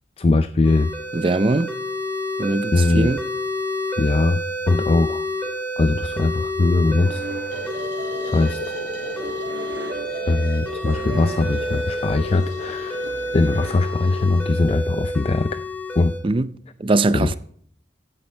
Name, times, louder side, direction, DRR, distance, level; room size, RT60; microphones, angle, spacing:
voice 1, 0.2-0.9 2.7-3.1 4.0-5.2 5.8-7.2 8.2-8.6 10.3-13.0 13.3-15.6 16.0-16.1 17.1-17.3, left 2 dB, 35° left, 0.4 m, -20 dB
sound 1, 0.6-16.2, equal, 10° left, 3.3 m, -29 dB
voice 2, 1.1-1.7 2.4-3.2 16.2-16.5 16.8-17.3, right 2 dB, 30° right, 0.5 m, -21 dB
sound 2, 7.0-14.7, right 3 dB, 70° right, 2.1 m, -38 dB
sound 3, 7.5-14.6, left 1 dB, 80° left, 7.2 m, -37 dB
16.0 x 10.5 x 4.5 m
head